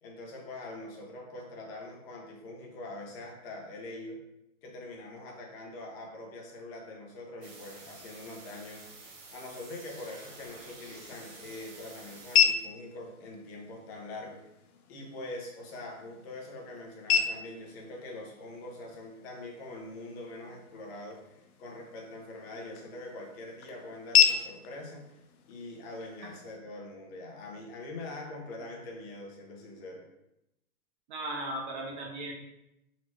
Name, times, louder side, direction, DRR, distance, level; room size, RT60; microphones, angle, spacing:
voice 1, 0.0-4.2 4.6-14.4 14.9-25.2 25.5-30.1, left 2 dB, 45° left, -1 dB, 1.2 m, -43 dB
sound 1, 7.4-12.4, right 3 dB, 60° right, 1.2 m, -50 dB
sound 2, 10.6-26.6, left 7 dB, 85° left, 0.6 m, -33 dB
voice 2, 31.1-32.3, right 1 dB, 35° right, 0 dB, 0.6 m, -36 dB
4.1 x 3.0 x 3.1 m, 0.86 s
hypercardioid pair, 130°, 43 cm